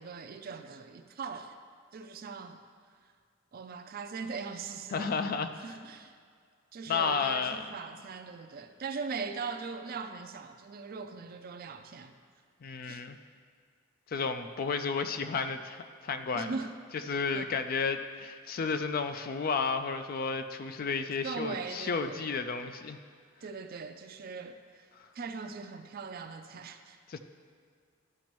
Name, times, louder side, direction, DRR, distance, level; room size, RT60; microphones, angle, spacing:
voice 1, 0.0-1.6 1.9-2.6 3.5-5.2 5.6-6.2 6.7-12.1 12.8-13.0 16.3-16.7 17.3-17.5 21.2-22.3 23.4-24.9 25.1-27.0, right 5 dB, 45° right, 8 dB, 0.4 m, -40 dB
voice 2, 4.9-5.5 6.9-7.7 12.6-13.2 14.1-16.5 17.1-23.0 25.0-25.1 27.1-27.2, left 5 dB, 45° left, 8 dB, 0.4 m, -32 dB
12.0 x 5.2 x 3.0 m, 2.1 s
head